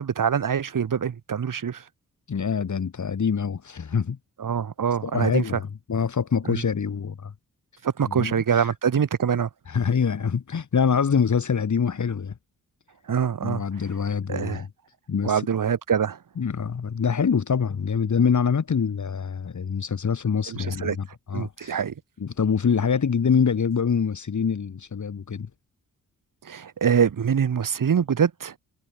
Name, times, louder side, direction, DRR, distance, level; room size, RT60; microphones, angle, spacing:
voice 1, 0.0-1.8 4.4-5.4 6.5-6.6 7.8-9.5 13.1-13.6 14.3-14.6 15.2-16.2 20.5-21.0 21.3-21.9 26.4-28.5, right 7 dB, 70° right, 4.7 m, -24 dB
voice 2, 2.3-4.2 5.0-7.3 8.0-8.7 9.7-12.3 13.4-14.7 15.1-15.4 16.4-21.8 22.2-25.5, left 6 dB, 60° left, 3.8 m, -25 dB
supercardioid pair, 50°, 34 cm